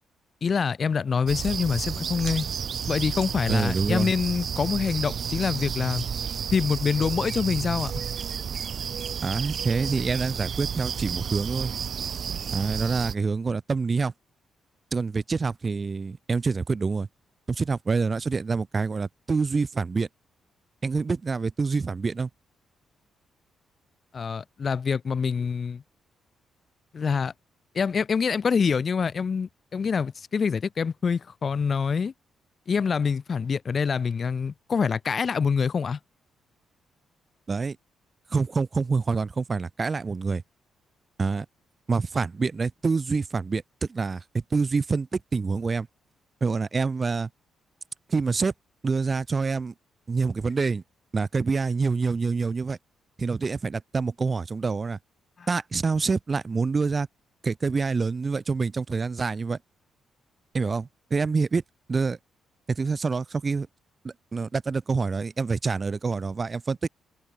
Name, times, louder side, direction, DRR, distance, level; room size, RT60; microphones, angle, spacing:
voice 1, 0.4-2.5 2.9-6.0 6.5-7.9 24.1-25.8 26.9-27.3 27.7-32.1 32.7-36.0 55.4-55.5, left 6 dB, 50° left, 0.6 m, -26 dB
sound 1, 1.3-13.1, right 7 dB, 60° right, 0.4 m, -31 dB
voice 2, 3.5-4.1 9.2-11.7 12.5-14.1 14.9-17.1 17.5-20.1 20.8-22.3 37.5-37.8 38.3-40.4 41.2-41.4 41.9-43.6 43.9-45.9 46.4-47.3 48.1-48.5 48.8-49.7 50.1-50.8 51.1-52.8 53.2-55.0 55.5-57.1 57.4-59.6 60.5-61.6 61.9-62.2 62.7-63.7 64.0-66.9, right 4 dB, 40° right, 1.5 m, -26 dB
open air
supercardioid pair, 50°, 0 cm